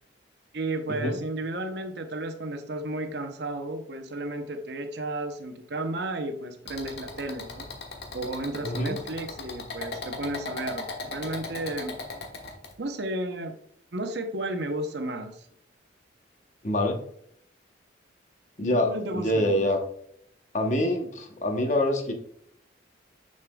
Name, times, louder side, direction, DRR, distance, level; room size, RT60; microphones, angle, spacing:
voice 1, 0.5-7.7 8.1-12.2 12.8-13.6 13.9-15.5 18.7-19.7, right 1 dB, 60° right, 6 dB, 0.8 m, -33 dB
sound 1, 6.7-12.7, left 3 dB, 60° left, 1.2 m, -38 dB
voice 2, 8.6-9.0 16.6-17.0 18.6-19.8 20.5-22.1, left 1 dB, 40° left, 4 dB, 0.9 m, -25 dB
6.6 x 6.6 x 2.3 m, 0.68 s
head